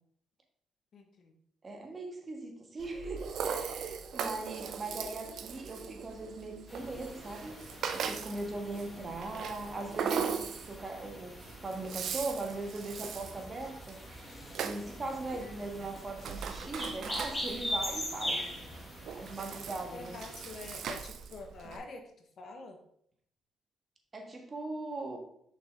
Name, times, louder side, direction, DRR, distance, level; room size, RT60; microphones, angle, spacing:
voice 1, 0.9-1.3 19.9-22.8, left 3 dB, 55° left, 5 dB, 1.3 m, -46 dB
voice 2, 1.6-7.7 7.9-11.4 11.6-14.0 14.6-18.5 19.1-20.2 24.1-25.2, right 2 dB, 30° right, 3 dB, 1.6 m, -39 dB
Rattle (instrument), 2.8-21.8, right 6 dB, 70° right, 0.7 m, -40 dB
sound 1, 6.7-21.0, left 1 dB, 15° left, 2.4 m, -42 dB
sound 2, 12.9-18.9, left 2 dB, 35° left, 1.5 m, -55 dB
6.2 x 5.8 x 3.7 m, 0.69 s
cardioid pair, 90°, 0 cm